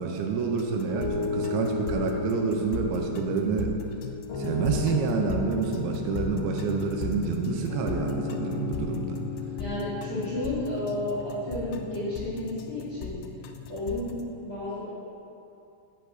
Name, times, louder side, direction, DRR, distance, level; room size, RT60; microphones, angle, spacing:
voice 1, 0.0-3.8 4.4-9.2, right 5 dB, 85° right, 2 dB, 2.9 m, -28 dB
sound 1, 0.6-14.2, left 6 dB, 80° left, 2.8 m, -38 dB
Piano, 0.9-14.2, left 4 dB, 60° left, 3.2 m, -35 dB
voice 2, 9.6-13.2 13.7-14.9, left 1 dB, 45° left, -9 dB, 2.0 m, -32 dB
13.5 x 7.6 x 4.0 m, 2.6 s
omnidirectional pair, 5.6 m